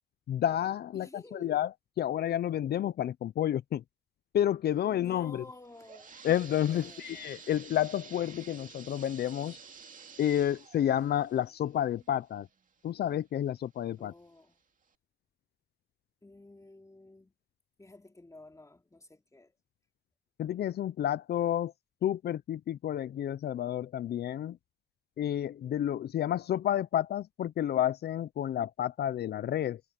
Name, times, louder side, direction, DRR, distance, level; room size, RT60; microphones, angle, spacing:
voice 1, 0.3-1.7 2.0-3.8 4.3-5.4 6.2-9.6 10.2-12.5 12.8-14.1 20.4-21.7 22.0-24.6 25.2-29.8, left 11 dB, 70° left, 0.6 m, -30 dB
voice 2, 0.9-1.6 4.8-6.2 6.7-7.5 14.0-14.6 16.2-17.3 17.8-19.5, left 2 dB, 20° left, 3.0 m, -52 dB
sound 1, 5.5-13.1 13.6-13.7 14.4-14.5 14.9-15.0, right 6 dB, 50° right, 2.5 m, -51 dB
cardioid pair, 60°, 17 cm